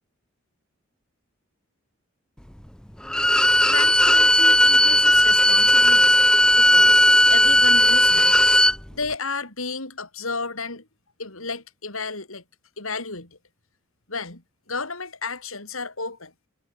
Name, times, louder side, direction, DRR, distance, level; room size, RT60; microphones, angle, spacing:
Bowed string instrument, 3.1-8.8, left 1 dB, 5° left, 0.7 m, -16 dB
voice 1, 3.7-6.2 6.6-7.0 7.3-8.4 8.9-10.9 11.2-12.4 12.8-13.4 14.1-14.4 14.7-16.3, left 4 dB, 85° left, 5.9 m, -32 dB
head